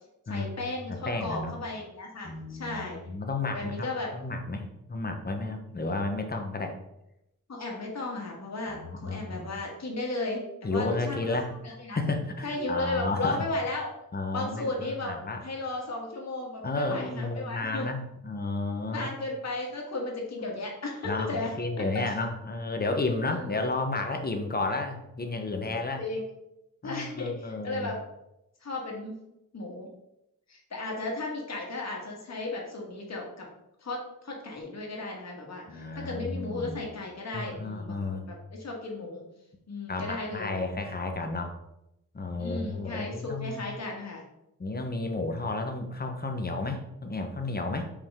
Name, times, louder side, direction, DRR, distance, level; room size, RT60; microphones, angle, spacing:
voice 1, 0.3-3.0 3.5-4.1 5.8-5.9 7.5-11.4 11.6-12.0 12.4-13.9 14.3-17.9 18.9-21.8 23.3-23.6 26.0-26.3 26.8-28.0 28.6-29.2 29.5-29.9 30.5-33.5 33.8-39.2 39.7-40.6 42.4-44.2, left 2 dB, 55° left, -1 dB, 1.7 m, -35 dB
voice 2, 1.1-1.5 2.2-6.8 8.7-9.5 10.6-11.5 11.9-13.4 14.1-15.4 16.6-19.1 21.0-26.0 26.8-27.9 35.7-36.8 37.3-38.3 39.9-41.5 42.1-43.6 44.6-47.9, left 2 dB, 30° left, 4 dB, 0.9 m, -32 dB
5.4 x 4.9 x 3.6 m, 0.86 s
wide cardioid pair, 115°, 32 cm